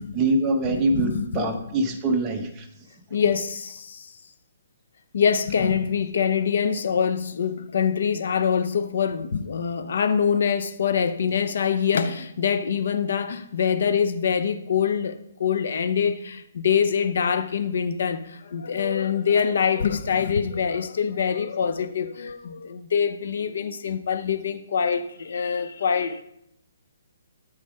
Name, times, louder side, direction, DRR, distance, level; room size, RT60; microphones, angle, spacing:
voice 1, 0.1-2.7, right 2 dB, 15° right, 1.2 m, -24 dB
voice 2, 0.7-1.5 3.1-4.1 5.1-26.2, left 7 dB, 60° left, 0.7 m, -24 dB
12.5 x 5.0 x 3.7 m
hypercardioid pair, 170°, 0 cm